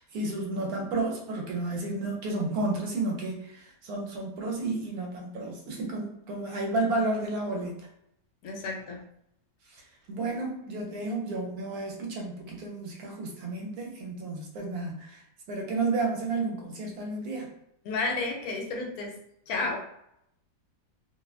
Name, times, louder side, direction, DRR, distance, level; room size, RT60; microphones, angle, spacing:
voice 1, 0.0-7.9 9.7-17.5, right 2 dB, 75° right, 0 dB, 1.1 m, -32 dB
voice 2, 8.4-9.0 17.8-19.2 19.5-19.8, left 3 dB, 75° left, 1 dB, 1.0 m, -31 dB
2.8 x 2.2 x 2.3 m, 0.78 s
omnidirectional pair, 1.6 m